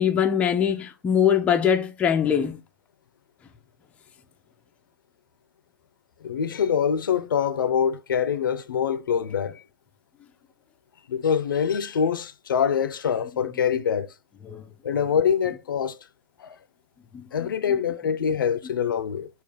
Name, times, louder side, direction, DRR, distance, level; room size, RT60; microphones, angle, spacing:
voice 1, 0.0-2.6 14.4-14.6 17.1-17.2, left 8 dB, 10° left, 0.3 m, -22 dB
voice 2, 6.2-9.6 11.1-14.1 14.8-16.0 16.4-16.6 17.3-19.3, left 7 dB, 75° left, 0.5 m, -24 dB
3.4 x 2.4 x 3.6 m
hypercardioid pair, 130°, 11 cm